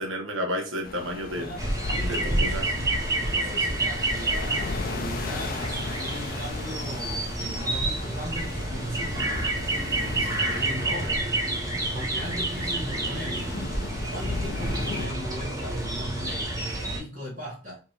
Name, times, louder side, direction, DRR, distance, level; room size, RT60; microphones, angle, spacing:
voice 1, 0.0-1.5 2.1-2.6, equal, 75° right, 2 dB, 1.1 m, -31 dB
sound 1, 0.8-15.1, left 4 dB, 45° left, 0.4 m, -37 dB
voice 2, 1.3-11.2 11.7-13.5 14.1-17.8, equal, 45° right, -9 dB, 1.5 m, -39 dB
sound 2, 1.6-17.0, right 2 dB, 20° right, 0.8 m, -29 dB
4.8 x 3.0 x 2.4 m, 0.36 s
head